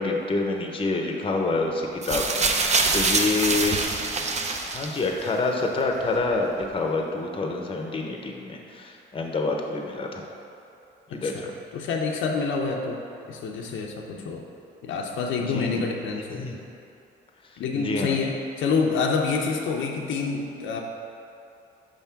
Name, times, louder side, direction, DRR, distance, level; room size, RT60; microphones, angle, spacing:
voice 1, 0.0-3.8 4.6-10.2 11.1-11.5 14.1-14.3 15.5-15.8 16.3-16.6 17.7-18.2, left 3 dB, 25° left, 1 dB, 0.7 m, -27 dB
sound 1, 2.0-5.3 6.2-6.3, right 3 dB, 35° right, 0.6 m, -25 dB
voice 2, 11.1-11.5 11.7-13.0 13.3-14.4 14.8-16.4 17.6-20.8, left 4 dB, 75° left, 1 dB, 0.6 m, -27 dB
5.3 x 3.5 x 5.7 m, 2.7 s
cardioid pair, 90°, 20 cm